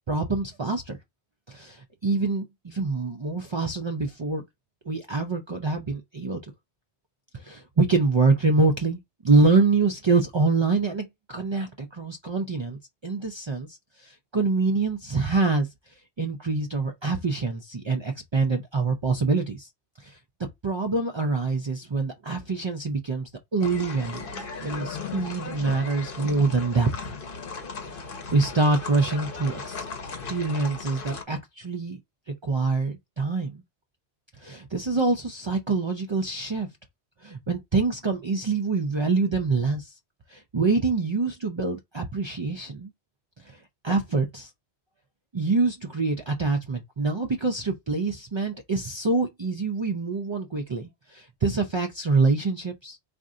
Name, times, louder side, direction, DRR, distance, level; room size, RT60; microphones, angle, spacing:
voice 1, 0.1-1.0 1.5-4.4 4.9-6.4 7.3-19.7 20.0-20.2 20.6-26.9 27.9-28.0 28.3-29.8 30.3-32.0 32.3-33.6 34.4-36.7 37.2-39.9 40.3-42.9 43.4-44.5 45.3-53.0, right 3 dB, 50° right, 0.3 m, -25 dB
sound 1, 23.6-31.2, left 4 dB, 55° left, 1.0 m, -37 dB
4.2 x 2.6 x 3.7 m
omnidirectional pair, 1.2 m